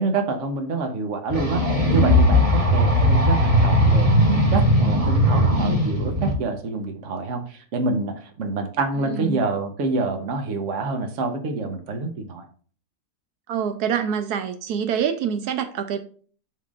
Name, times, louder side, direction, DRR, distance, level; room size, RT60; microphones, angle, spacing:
voice 1, 0.0-12.5, right 3 dB, 55° right, 6 dB, 1.3 m, -27 dB
sound 1, 1.3-6.3, equal, 25° right, 1.4 m, -18 dB
voice 2, 9.0-9.4 13.5-16.0, right 8 dB, 85° right, 8 dB, 1.2 m, -26 dB
11.0 x 3.7 x 2.5 m, 0.44 s
omnidirectional pair, 1.6 m